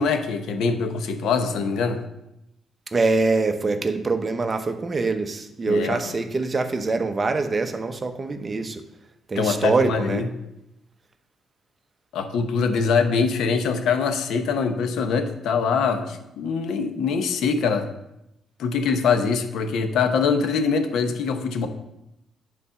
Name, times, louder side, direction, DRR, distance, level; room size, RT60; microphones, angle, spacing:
voice 1, 0.0-2.0 5.7-6.1 9.4-10.3 12.1-17.9 18.6-21.7, left 5 dB, 80° left, 7 dB, 0.9 m, -23 dB
voice 2, 2.9-8.8 9.3-10.2, right 3 dB, 30° right, 7 dB, 0.9 m, -24 dB
9.2 x 4.2 x 5.7 m, 0.87 s
cardioid pair, 90°, 0 cm